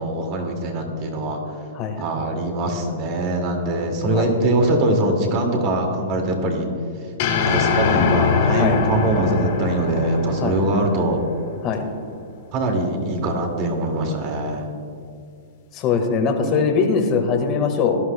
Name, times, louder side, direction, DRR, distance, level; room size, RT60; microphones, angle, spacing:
voice 1, 0.0-1.4 2.0-6.7 7.5-11.2 12.5-14.6 16.4-16.5, right 1 dB, 40° right, 2 dB, 2.1 m, -22 dB
sound 1, 7.2-11.6, left 5 dB, 50° left, 1.7 m, -22 dB
voice 2, 15.7-18.0, left 5 dB, 35° left, 4 dB, 1.6 m, -21 dB
18.0 x 11.5 x 2.2 m, 2.4 s
hypercardioid pair, 135°, 0 cm